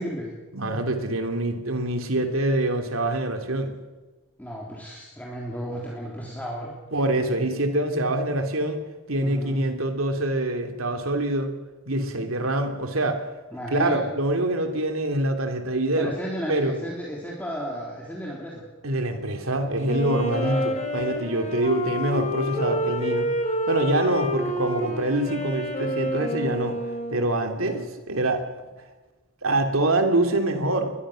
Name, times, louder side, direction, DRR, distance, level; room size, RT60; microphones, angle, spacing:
voice 1, 0.0-0.4 4.4-6.7 9.2-9.6 13.5-14.1 16.0-18.6 20.4-20.7 27.6-27.9, equal, 10° left, -3 dB, 3.6 m, -33 dB
voice 2, 0.5-3.7 6.9-8.8 9.1-11.5 11.9-13.2 13.7-16.1 16.5-16.8 18.8-23.3 23.7-26.7 27.1-28.5 29.4-30.9, right 1 dB, 75° right, 5 dB, 2.9 m, -25 dB
Wind instrument woodwind instrument, 19.8-27.5, equal, 35° left, 3.7 m, -28 dB
22.5 x 20.5 x 6.4 m, 1.2 s
head